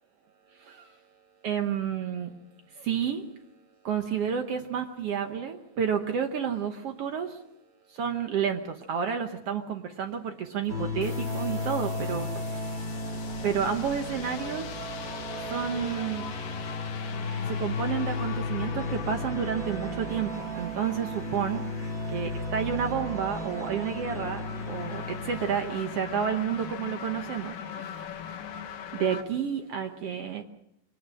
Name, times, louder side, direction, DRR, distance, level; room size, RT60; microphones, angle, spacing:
voice 1, 0.6-1.0 1.4-2.3 2.7-3.3 3.8-7.4 7.9-12.7 13.4-14.7 15.5-16.3 17.5-21.7 22.1-28.1 28.9-30.4, right 7 dB, 70° right, 6 dB, 1.4 m, -30 dB
sound 1, 10.7-26.6, left 2 dB, 30° right, 1.9 m, -34 dB
sound 2, 11.0-29.2, left 8 dB, 70° left, 3.1 m, -41 dB
23.5 x 19.0 x 6.3 m, 0.79 s
omnidirectional pair, 4.1 m